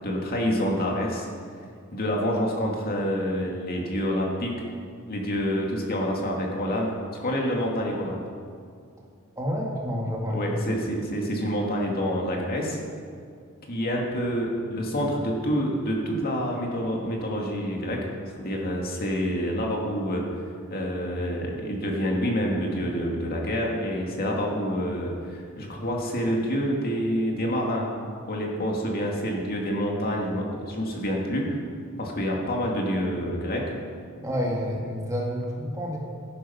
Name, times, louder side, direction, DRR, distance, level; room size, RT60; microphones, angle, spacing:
voice 1, 0.0-1.3 1.9-4.6 5.1-8.2 10.3-12.8 13.7-18.0 18.4-20.2 20.7-27.9 28.2-31.6 32.0-33.6, equal, 45° left, -1 dB, 2.2 m, -27 dB
voice 2, 9.4-10.4 34.2-36.0, equal, 15° right, -2 dB, 2.3 m, -29 dB
14.0 x 11.0 x 5.8 m, 2.2 s
head